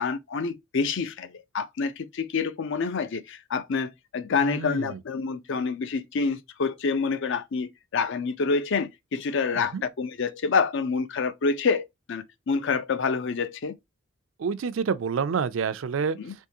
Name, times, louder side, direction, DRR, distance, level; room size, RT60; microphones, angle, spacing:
voice 1, 0.0-13.7 16.2-16.3, left 5 dB, 65° left, 0.5 m, -27 dB
voice 2, 4.4-5.0 9.5-9.8 14.4-16.2, right 6 dB, 70° right, 0.4 m, -28 dB
3.6 x 3.0 x 2.7 m
head